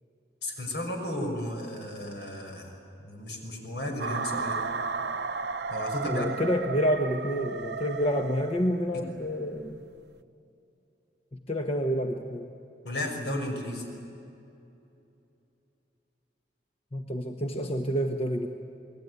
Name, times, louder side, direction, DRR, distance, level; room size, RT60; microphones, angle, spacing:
voice 1, 0.4-2.7 3.0-4.6 5.7-6.3 12.8-13.9, left 1 dB, 70° left, 3 dB, 5.6 m, -34 dB
sound 1, 4.0-9.0, right 4 dB, 70° right, 0.7 m, -34 dB
voice 2, 6.1-9.8 11.3-12.5 16.9-18.5, equal, 35° left, 3 dB, 1.1 m, -28 dB
28.5 x 20.5 x 9.6 m, 2.7 s
head